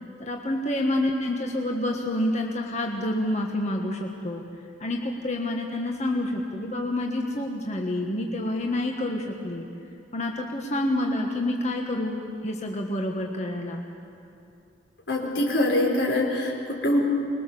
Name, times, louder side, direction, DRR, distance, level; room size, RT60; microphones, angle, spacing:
voice 1, 0.2-4.4 4.8-9.7 10.1-13.8, left 1 dB, 40° left, 0 dB, 1.6 m, -28 dB
voice 2, 15.1-17.0, left 1 dB, 90° left, 0 dB, 4.5 m, -24 dB
25.0 x 21.5 x 7.0 m, 2.6 s
head